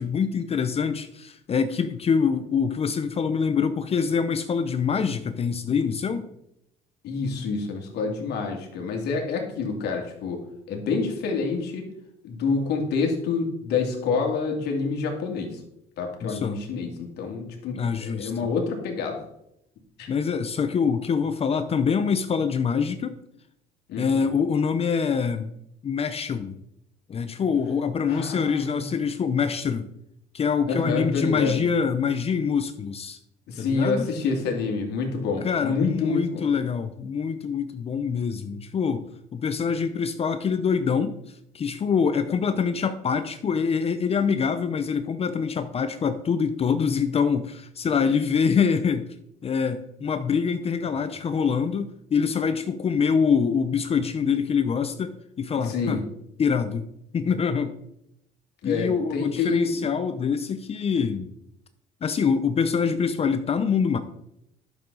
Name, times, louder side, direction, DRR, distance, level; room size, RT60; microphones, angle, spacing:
voice 1, 0.0-6.3 16.2-16.6 17.7-18.3 20.1-23.2 24.0-25.5 25.8-26.6 27.1-29.9 30.3-33.2 33.6-34.1 35.4-39.1 39.3-49.1 49.4-56.0 56.4-57.8 58.6-61.3 62.0-64.0, left 6 dB, 35° left, 10 dB, 0.6 m, -25 dB
voice 2, 7.0-11.9 12.2-15.6 16.0-19.2 20.0-20.1 23.9-24.3 28.1-28.9 30.7-31.6 33.5-36.5 55.5-56.0 58.6-59.9, left 4 dB, 75° left, 1 dB, 2.3 m, -28 dB
11.0 x 6.9 x 4.0 m, 0.79 s
cardioid pair, 110°, 17 cm